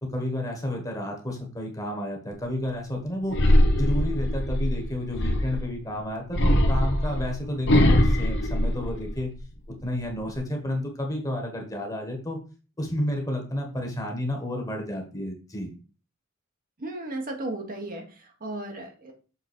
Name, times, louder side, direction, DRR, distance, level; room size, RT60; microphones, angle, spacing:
voice 1, 0.0-3.3 3.7-9.3 9.8-12.4 12.8-15.7, left 1 dB, 15° left, 2 dB, 1.5 m, -31 dB
sound 1, 3.3-5.7 6.3-9.4 9.8-10.4, left 1 dB, 60° left, 1.1 m, -22 dB
voice 2, 16.8-19.1, right 2 dB, 45° right, 2 dB, 1.2 m, -35 dB
6.9 x 3.9 x 4.4 m, 0.36 s
head